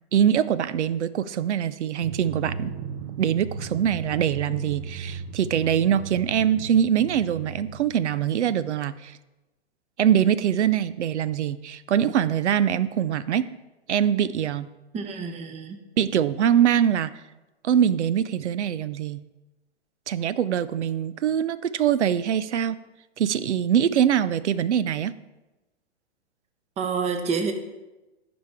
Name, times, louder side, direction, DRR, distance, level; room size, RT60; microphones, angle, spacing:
voice 1, 0.1-2.7 3.2-9.1 10.0-13.5 13.9-14.7 16.0-17.1 17.6-19.2 20.1-22.8 23.2-25.1, right 9 dB, 85° right, 16 dB, 0.6 m, -23 dB
Drum, 2.0-8.5, right 5 dB, 45° right, 1.0 m, -36 dB
voice 2, 14.9-15.8 26.8-27.5, right 5 dB, 20° right, 7 dB, 0.9 m, -28 dB
14.5 x 5.2 x 3.5 m, 1.1 s
hypercardioid pair, 130°, 34 cm